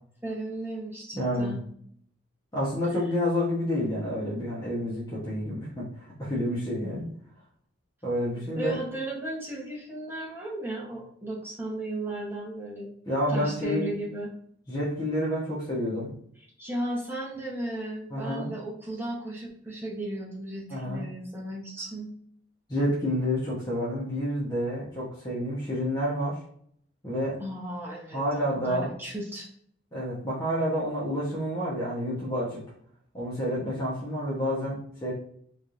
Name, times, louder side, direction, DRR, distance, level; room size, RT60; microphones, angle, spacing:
voice 1, 0.2-1.6 8.5-12.9 13.3-14.3 16.6-22.1 27.4-29.5, right 1 dB, 10° right, -4 dB, 1.1 m, -35 dB
voice 2, 1.1-1.6 2.5-7.1 8.0-8.8 13.1-13.9 14.7-16.1 18.1-18.5 20.7-21.0 22.7-26.4 27.0-27.4 28.1-28.9 29.9-32.6 33.1-35.1, equal, 20° left, -8 dB, 1.0 m, -29 dB
4.2 x 3.3 x 2.6 m, 0.64 s
head